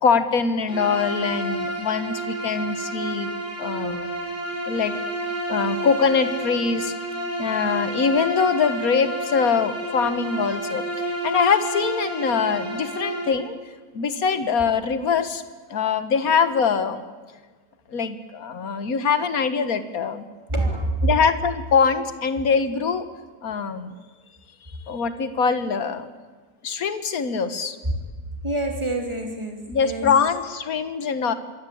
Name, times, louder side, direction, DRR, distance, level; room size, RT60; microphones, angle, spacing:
voice 1, 0.0-3.3 3.6-4.1 4.7-5.0 5.5-6.9 7.4-13.5 13.9-15.4 15.7-17.0 17.9-20.2 21.0-23.1 23.4-23.9 24.9-26.1 26.6-27.8 29.7-31.3, left 5 dB, 65° left, 11 dB, 1.9 m, -23 dB
Bowed string instrument, 0.7-13.4, right 1 dB, 50° right, 6.3 m, -30 dB
voice 2, 20.5-21.1 27.4-27.5 28.4-30.1, right 1 dB, 15° right, 3 dB, 3.5 m, -26 dB
26.0 x 22.5 x 8.7 m, 1.3 s
omnidirectional pair, 1.7 m